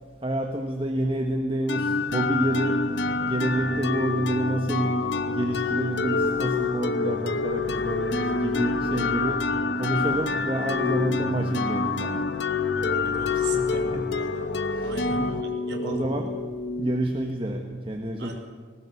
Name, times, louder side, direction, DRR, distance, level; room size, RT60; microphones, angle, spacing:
voice 1, 0.2-2.9 3.2-12.4 13.3-14.1 14.6-15.5 15.8-16.3 16.8-18.4, right 1 dB, 25° right, 3 dB, 1.4 m, -29 dB
sound 1, 1.7-17.3, left 4 dB, 70° left, 1.1 m, -27 dB
voice 2, 12.7-14.4 14.8-16.3 18.2-18.4, right 2 dB, 60° right, 1 dB, 3.9 m, -38 dB
20.0 x 18.5 x 8.5 m, 1.5 s
head